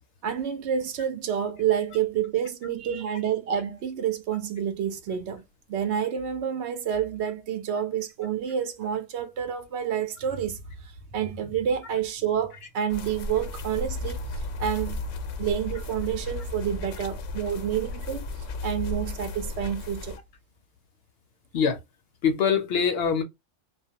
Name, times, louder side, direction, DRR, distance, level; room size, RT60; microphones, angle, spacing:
voice 1, 0.2-5.4 5.7-14.3 14.6-15.0 15.4-20.2, right 8 dB, 70° right, 0.8 m, -29 dB
sound 1, 12.9-20.2, left 2 dB, 90° left, 0.9 m, -36 dB
voice 2, 22.2-23.2, left 6 dB, 65° left, 0.7 m, -23 dB
2.3 x 2.0 x 2.7 m
omnidirectional pair, 1.3 m